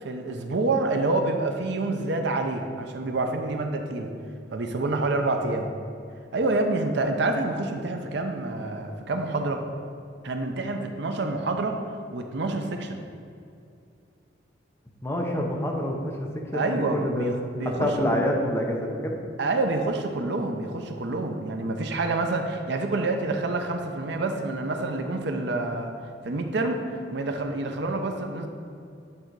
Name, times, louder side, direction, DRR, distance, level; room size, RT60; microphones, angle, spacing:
voice 1, 0.0-4.1 4.5-5.7 6.3-9.6 10.2-11.8 12.1-13.0 16.5-17.9 19.4-25.9 26.2-26.8 27.1-28.5, right 2 dB, 65° right, 5 dB, 0.6 m, -27 dB
voice 2, 15.0-17.3 17.6-19.2, equal, 15° left, 0 dB, 0.7 m, -27 dB
8.7 x 3.9 x 4.6 m, 2.5 s
head